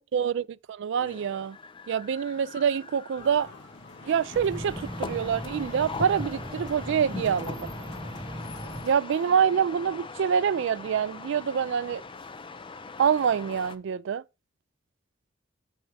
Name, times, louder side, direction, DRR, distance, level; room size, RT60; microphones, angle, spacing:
voice 1, 0.0-1.6 1.9-3.5 4.0-7.7 8.8-12.0 13.0-14.2, right 7 dB, 65° right, 0.3 m, -26 dB
sound 1, 1.0-13.8, left 3 dB, 25° left, 0.5 m, -41 dB
sound 2, 3.2-8.9, left 2 dB, 60° left, 1.7 m, -49 dB
sound 3, 4.3-8.8, equal, 20° right, 1.0 m, -39 dB
7.4 x 4.5 x 4.7 m
head